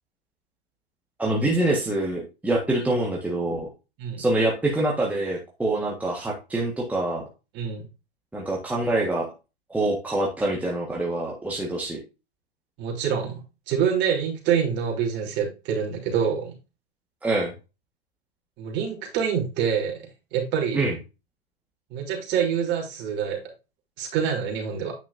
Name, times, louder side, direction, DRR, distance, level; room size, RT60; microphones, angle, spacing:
voice 1, 1.2-3.7 4.2-7.2 8.3-9.3 9.7-12.0 17.2-17.5 20.7-21.0, right 2 dB, 5° right, -2 dB, 1.5 m, -25 dB
voice 2, 7.5-7.9 12.8-16.5 18.6-20.0 20.3-20.8 21.9-23.4 24.0-24.9, right 7 dB, 35° right, 0 dB, 3.3 m, -26 dB
9.2 x 5.9 x 2.6 m, 0.28 s
hypercardioid pair, 115°, 30 cm